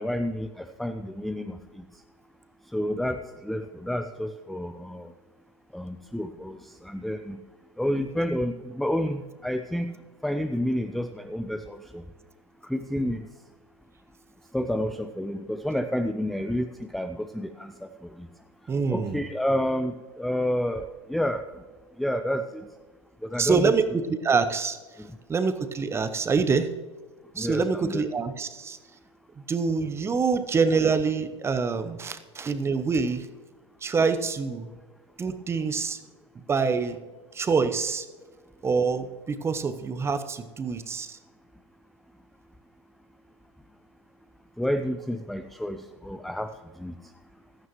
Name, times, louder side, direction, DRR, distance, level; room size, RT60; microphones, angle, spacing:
voice 1, 0.0-1.9 2.7-5.1 5.7-7.4 7.8-9.9 10.2-12.0 12.6-13.3 14.5-18.3 18.9-21.4 22.0-22.6 23.2-23.7 25.0-25.1 27.4-28.0 44.6-46.5 46.8-46.9, equal, ahead, 7 dB, 0.5 m, -30 dB
voice 2, 18.7-19.2 23.4-24.8 25.3-26.7 27.4-28.8 29.5-33.3 33.8-34.7 35.2-36.0 36.3-37.0 37.3-38.1 38.6-41.2, right 5 dB, 15° right, 11 dB, 0.9 m, -26 dB
15.5 x 14.0 x 3.1 m, 1.3 s
figure-of-eight pair, 90°, 15 cm